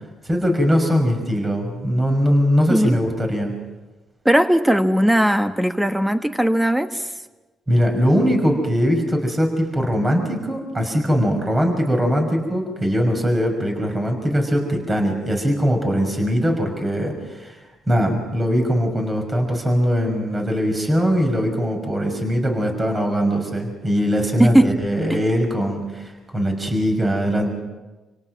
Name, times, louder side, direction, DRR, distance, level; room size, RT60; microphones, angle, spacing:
voice 1, 0.2-3.5 7.7-17.6 17.9-27.5, equal, 25° right, 3 dB, 5.7 m, -21 dB
voice 2, 4.2-7.1 24.4-24.7 25.1-25.2, right 1 dB, 5° right, 8 dB, 1.4 m, -18 dB
28.0 x 18.0 x 6.0 m, 1.2 s
cardioid pair, 90°, 0 cm